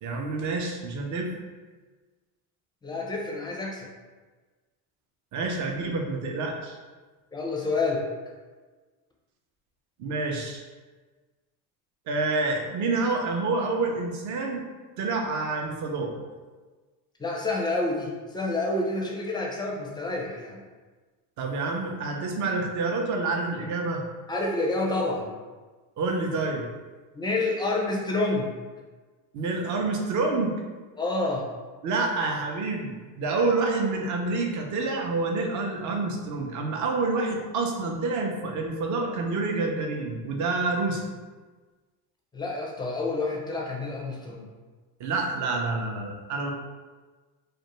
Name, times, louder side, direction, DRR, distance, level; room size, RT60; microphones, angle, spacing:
voice 1, 0.0-1.3 5.3-6.8 10.0-10.6 12.1-14.6 15.0-16.1 21.4-24.0 26.0-26.7 29.3-30.5 31.8-41.0 45.0-46.5, right 3 dB, 45° right, 1 dB, 0.6 m, -28 dB
voice 2, 2.8-3.9 7.3-8.0 17.2-20.6 24.3-25.3 27.1-28.5 31.0-31.5 42.3-44.5, left 2 dB, 10° left, -1 dB, 0.4 m, -28 dB
2.4 x 2.1 x 3.0 m, 1.3 s
supercardioid pair, 95°, 42 cm